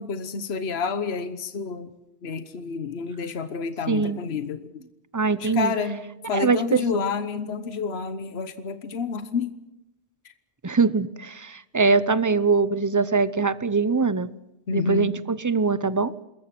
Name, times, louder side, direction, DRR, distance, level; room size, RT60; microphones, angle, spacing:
voice 1, 0.0-1.9 2.2-4.7 5.4-9.5 14.7-15.1, left 5 dB, 70° left, 11 dB, 1.3 m, -29 dB
voice 2, 3.9-4.2 5.1-5.7 6.3-7.0 10.6-14.3 14.7-16.1, right 4 dB, 20° right, 16 dB, 0.7 m, -22 dB
28.0 x 21.5 x 6.0 m, 0.91 s
omnidirectional pair, 1.1 m